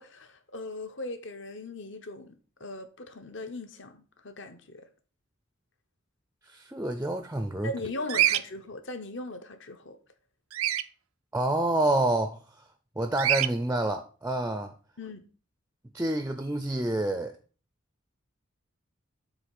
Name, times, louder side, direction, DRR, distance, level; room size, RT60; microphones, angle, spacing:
voice 1, 0.0-4.9 7.6-10.0 15.0-15.3, left 2 dB, 60° left, 1.0 m, -39 dB
voice 2, 6.5-7.7 11.3-12.4 13.0-14.7 15.9-17.3, right 1 dB, 10° right, 0.4 m, -28 dB
Bird vocalization bird call bird song, 8.1-8.4 10.5-10.8 13.2-13.5, right 12 dB, 85° right, 0.4 m, -24 dB
7.9 x 3.2 x 5.9 m
head